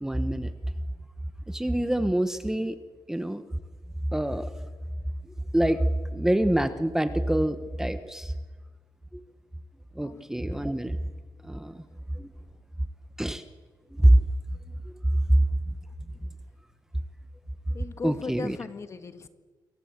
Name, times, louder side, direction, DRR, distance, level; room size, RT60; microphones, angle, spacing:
voice 1, 0.0-0.5 1.5-2.8 3.1-3.4 4.1-4.5 5.5-5.8 6.1-8.3 10.0-11.0 11.4-11.8 12.1-12.3 13.2-13.4 13.9-14.2 15.3-15.4 18.0-18.6, right 1 dB, 5° right, 10 dB, 1.2 m, -25 dB
voice 2, 17.7-19.3, left 5 dB, 35° left, 9 dB, 1.8 m, -37 dB
28.5 x 23.5 x 8.2 m, 1.4 s
cardioid pair, 120°, 8 cm